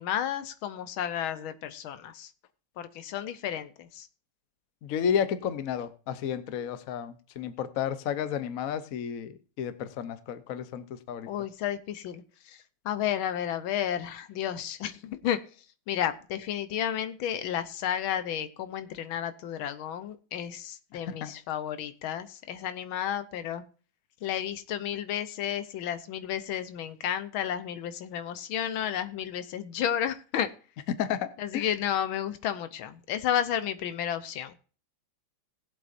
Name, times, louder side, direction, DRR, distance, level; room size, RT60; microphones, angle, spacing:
voice 1, 0.0-2.3 2.8-4.1 11.3-12.6 12.8-15.4 15.9-23.6 24.2-30.5 31.4-34.6, left 10 dB, 80° left, 11 dB, 1.6 m, -32 dB
voice 2, 4.8-11.3 20.9-21.3 31.0-31.7, left 8 dB, 55° left, 12 dB, 1.0 m, -32 dB
19.5 x 7.6 x 2.6 m, 0.37 s
omnidirectional pair, 2.3 m